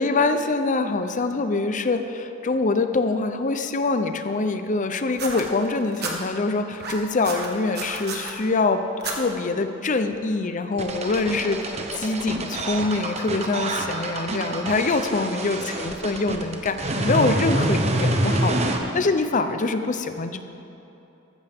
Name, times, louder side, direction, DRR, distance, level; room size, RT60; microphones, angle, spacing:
voice 1, 0.0-20.4, left 3 dB, 40° left, 9 dB, 0.6 m, -24 dB
sound 1, 5.1-6.1 6.7-8.3 9.0-9.2 10.1-10.2, right 4 dB, 55° right, 1.6 m, -32 dB
sound 2, 10.8-18.8, right 1 dB, 35° right, 1.0 m, -26 dB
14.5 x 13.5 x 3.6 m, 3.0 s
head